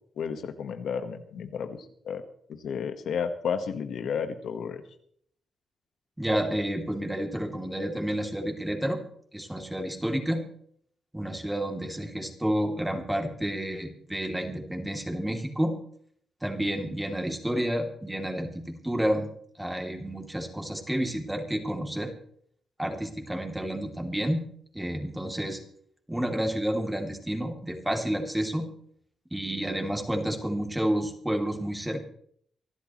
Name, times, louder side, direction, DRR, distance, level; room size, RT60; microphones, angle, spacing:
voice 1, 0.2-2.2 2.5-4.8, left 6 dB, 75° left, 8 dB, 1.4 m, -32 dB
voice 2, 6.2-9.0 9.3-10.4 11.1-15.7 16.4-19.3 19.6-22.1 22.8-24.4 24.7-25.6 26.1-28.7 29.3-32.0, equal, 10° right, 3 dB, 2.8 m, -30 dB
25.0 x 12.5 x 3.1 m, 0.62 s
cardioid pair, 110°, 0 cm